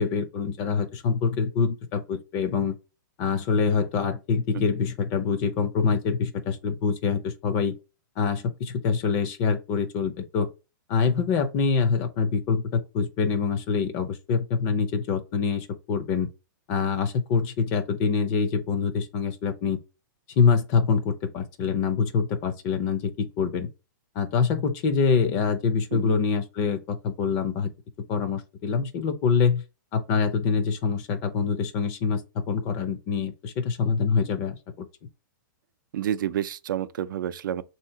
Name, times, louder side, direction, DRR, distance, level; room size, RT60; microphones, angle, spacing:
voice 1, 0.0-2.8 3.2-7.7 8.2-10.5 10.9-16.3 16.7-19.8 20.4-23.7 24.2-27.7 28.1-29.6 29.9-34.9, left 5 dB, 25° left, 0.5 m, -25 dB
voice 2, 35.9-37.6, right 11 dB, 70° right, 0.4 m, -29 dB
3.5 x 2.8 x 4.4 m
hypercardioid pair, 160°, 11 cm